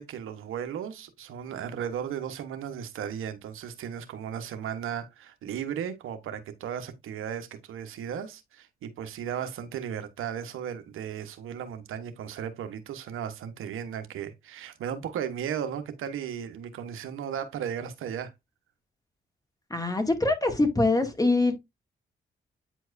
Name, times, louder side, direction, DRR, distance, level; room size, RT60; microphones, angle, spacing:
voice 1, 0.0-18.3, right 8 dB, 80° right, 1.2 m, -35 dB
voice 2, 19.7-21.5, left 2 dB, 15° left, 2.2 m, -24 dB
9.1 x 4.6 x 2.6 m
supercardioid pair, 55°, 21 cm